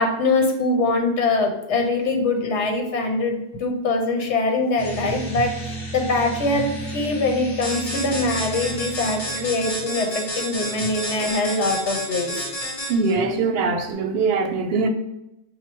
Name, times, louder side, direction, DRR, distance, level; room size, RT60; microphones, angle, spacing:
voice 1, 0.0-12.4, left 2 dB, 85° left, 3 dB, 1.1 m, -23 dB
sound 1, 4.8-9.9, right 2 dB, 55° left, 1.1 m, -34 dB
sound 2, 7.6-13.2, equal, 35° left, 0.9 m, -30 dB
voice 2, 12.9-14.9, right 4 dB, 65° right, 7 dB, 0.8 m, -22 dB
4.8 x 2.1 x 4.3 m, 0.87 s
omnidirectional pair, 1.1 m